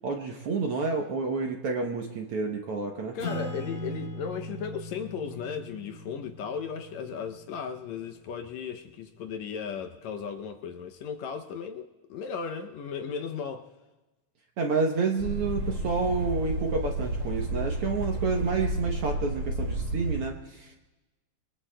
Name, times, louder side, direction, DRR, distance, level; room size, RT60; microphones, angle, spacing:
voice 1, 0.0-3.2 14.6-20.7, right 4 dB, 65° right, 1 dB, 1.5 m, -29 dB
voice 2, 3.1-13.7, left 6 dB, 75° left, 5 dB, 1.8 m, -36 dB
Acoustic guitar / Strum, 3.2-8.2, left 1 dB, 60° left, 6.0 m, -39 dB
sound 1, 15.2-20.2, right 1 dB, 45° right, 1.9 m, -31 dB
26.5 x 23.0 x 2.2 m, 1.1 s
omnidirectional pair, 3.5 m